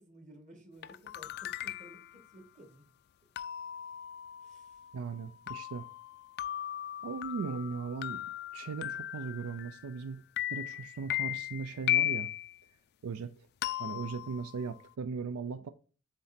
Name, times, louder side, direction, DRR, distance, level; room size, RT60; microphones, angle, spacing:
voice 1, 0.0-2.9 4.4-4.8 15.4-15.6, equal, 35° right, 1.6 m, -55 dB
sound 1, 0.8-2.1 3.4-10.0 10.4-12.5 13.6-14.9, left 13 dB, 50° left, 0.3 m, -37 dB
voice 2, 4.9-5.9 7.0-8.2 8.5-10.2 10.5-12.3 13.0-13.3 13.8-15.7, right 5 dB, 85° right, 0.4 m, -38 dB
7.8 x 3.2 x 4.2 m
head